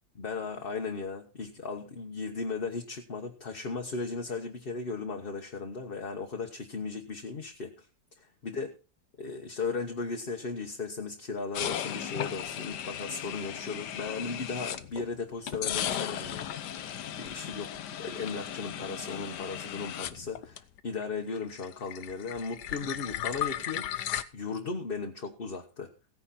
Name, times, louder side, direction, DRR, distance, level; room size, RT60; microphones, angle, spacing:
voice 1, 0.2-7.9 8.2-8.7 9.2-16.5 17.1-24.1 24.3-25.9, left 4 dB, 35° left, 2 dB, 1.3 m, -36 dB
sound 1, 11.5-15.1 15.5-21.0 21.3-24.2, left 10 dB, 85° left, 1.4 m, -36 dB
16.0 x 9.9 x 4.2 m, 0.34 s
omnidirectional pair, 1.8 m